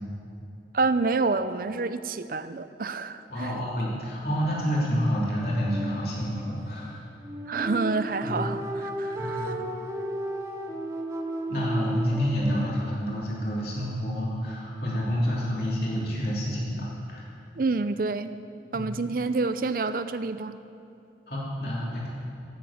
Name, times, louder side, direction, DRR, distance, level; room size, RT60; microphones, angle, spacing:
voice 1, 0.7-3.6 7.5-9.6 17.6-18.3 18.7-20.6, right 3 dB, 50° right, 12 dB, 0.5 m, -28 dB
voice 2, 3.3-7.0 8.2-8.4 9.2-9.6 11.5-17.2 18.7-18.9 21.3-22.1, equal, 55° left, -6 dB, 3.0 m, -28 dB
sound 1, 5.4-12.7, right 1 dB, 15° right, 0.8 m, -34 dB
18.0 x 7.4 x 7.2 m, 2.6 s
head